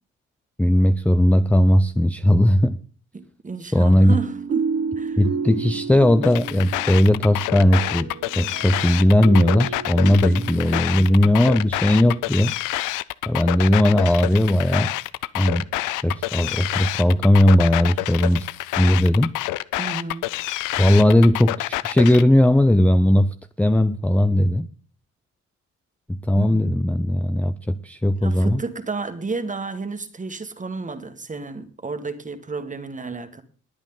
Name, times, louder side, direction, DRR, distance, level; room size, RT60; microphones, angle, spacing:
voice 1, 0.6-2.8 3.7-4.2 5.2-12.5 13.3-14.9 15.3-18.5 18.8-19.3 20.8-24.7 26.1-28.6, left 1 dB, 5° left, 0.6 m, -18 dB
voice 2, 3.1-5.2 10.6-11.4 19.8-20.3 26.4-26.8 28.2-33.4, right 4 dB, 25° right, 1.7 m, -32 dB
sound 1, 4.1-10.8, right 5 dB, 55° right, 1.7 m, -31 dB
sound 2, 6.2-22.2, left 17 dB, 90° left, 0.5 m, -27 dB
20.0 x 8.8 x 3.9 m
cardioid pair, 90°, 30 cm